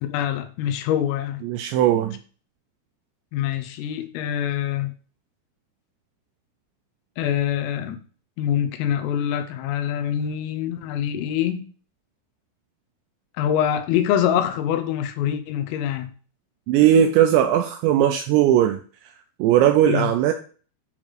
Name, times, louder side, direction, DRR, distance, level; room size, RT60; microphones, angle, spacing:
voice 1, 0.0-1.4 3.3-4.9 7.2-8.0 8.4-11.7 13.4-16.1 19.9-20.1, left 10 dB, 90° left, 3.6 m, -25 dB
voice 2, 1.4-2.2 16.7-18.8 19.4-20.3, right 10 dB, 85° right, 2.6 m, -18 dB
9.4 x 4.1 x 4.8 m
omnidirectional pair, 5.7 m